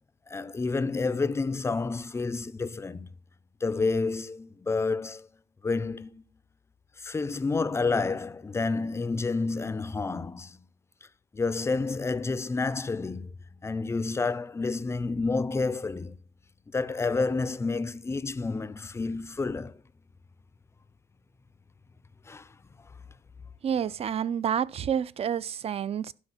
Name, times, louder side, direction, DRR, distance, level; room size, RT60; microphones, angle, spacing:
voice 1, 0.3-3.1 3.6-5.3 5.6-6.2 7.0-10.6 11.3-16.2 16.7-19.8 22.3-22.5, left 3 dB, 15° left, 0.5 m, -29 dB
voice 2, 23.6-26.1, right 8 dB, 35° right, 0.5 m, -29 dB
11.5 x 5.2 x 5.7 m
cardioid pair, 110°, 17 cm